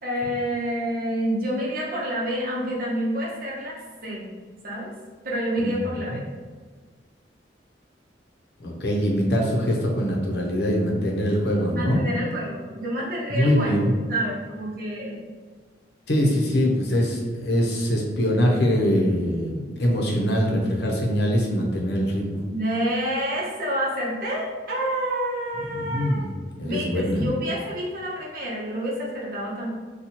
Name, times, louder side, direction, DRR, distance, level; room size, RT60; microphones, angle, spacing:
voice 1, 0.0-4.2 4.6-4.9 5.2-6.3 11.6-15.3 22.5-26.3 26.6-29.7, equal, 50° right, -4 dB, 0.8 m, -28 dB
voice 2, 5.6-6.0 8.6-12.0 13.3-13.9 16.1-22.4 25.8-26.3 26.6-27.3, equal, 60° left, -1 dB, 0.7 m, -23 dB
4.1 x 2.3 x 2.8 m, 1.4 s
head